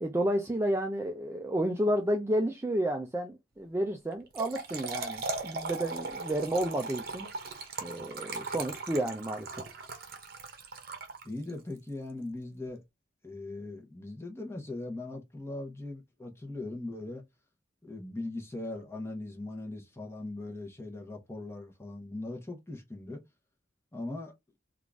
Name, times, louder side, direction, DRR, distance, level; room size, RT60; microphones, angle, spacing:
voice 1, 0.0-7.3 7.8-9.6, right 1 dB, 15° right, 0.4 m, -31 dB
Trickle dribble / Fill (with liquid), 4.1-11.6, right 3 dB, 50° right, 0.8 m, -38 dB
voice 2, 11.2-12.8 13.2-17.2 17.8-23.2 23.9-24.3, left 2 dB, 15° left, 0.9 m, -40 dB
3.6 x 2.5 x 3.4 m
head